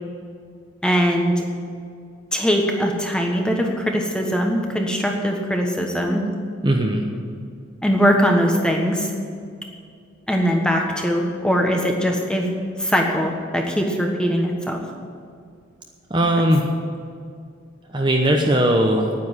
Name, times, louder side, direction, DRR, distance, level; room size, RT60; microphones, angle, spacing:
voice 1, 0.8-1.4 2.3-6.2 7.8-9.1 10.3-12.5 12.8-14.8, equal, 5° left, 1 dB, 1.3 m, -21 dB
voice 2, 6.6-7.0 16.1-16.6 17.9-19.1, right 1 dB, 20° right, 1 dB, 0.9 m, -18 dB
9.8 x 9.6 x 9.6 m, 2.2 s
head